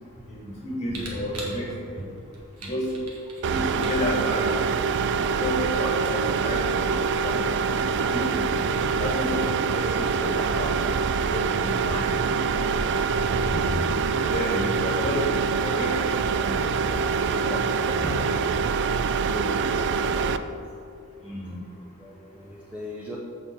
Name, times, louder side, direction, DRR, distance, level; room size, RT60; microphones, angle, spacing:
voice 1, 0.3-2.0 2.6-2.8 3.5-4.5 5.4-7.0 7.2-7.4 7.7-8.4 9.0-10.7 11.2-12.1 13.4-14.0 14.3-15.2 15.6-16.5 17.4-17.6 17.9-18.5 21.2-21.6, equal, 30° left, -3 dB, 2.1 m, -31 dB
Camera, 0.9-7.7, right 2 dB, 75° right, 1.6 m, -45 dB
sound 1, 3.4-20.4, right 5 dB, 55° right, 0.3 m, -25 dB
voice 2, 19.2-20.6 21.5-23.2, equal, 5° right, -4 dB, 0.6 m, -39 dB
6.1 x 5.6 x 6.8 m, 2.4 s
head